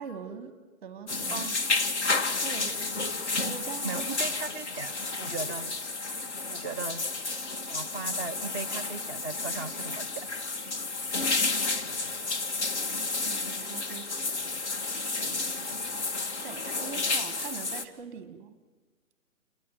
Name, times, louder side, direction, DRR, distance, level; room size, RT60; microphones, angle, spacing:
voice 1, 0.0-1.5 2.4-2.8 3.4-4.1 13.2-14.6 15.2-16.0 16.4-18.6, right 6 dB, 10° right, 10 dB, 1.1 m, -43 dB
sound 1, 1.1-17.9, left 3 dB, 50° left, 2.4 m, -31 dB
voice 2, 3.8-5.7 6.5-7.1 7.7-10.2, right 4 dB, 15° left, 2 dB, 0.9 m, -37 dB
28.0 x 19.5 x 9.1 m, 1.3 s
hypercardioid pair, 170°, 42 cm